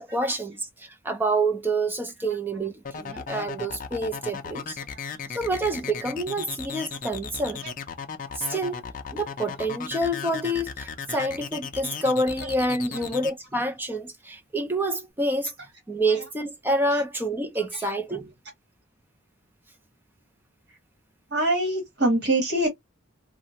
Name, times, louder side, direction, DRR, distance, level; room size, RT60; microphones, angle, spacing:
voice 1, 0.0-4.8 5.3-7.6 8.4-8.8 9.1-15.5 15.9-18.3, right 1 dB, 10° right, 0.5 m, -27 dB
sound 1, 2.8-13.3, left 6 dB, 40° left, 0.5 m, -35 dB
voice 2, 21.3-22.7, right 1 dB, 55° right, 1.4 m, -25 dB
2.7 x 2.2 x 2.7 m
head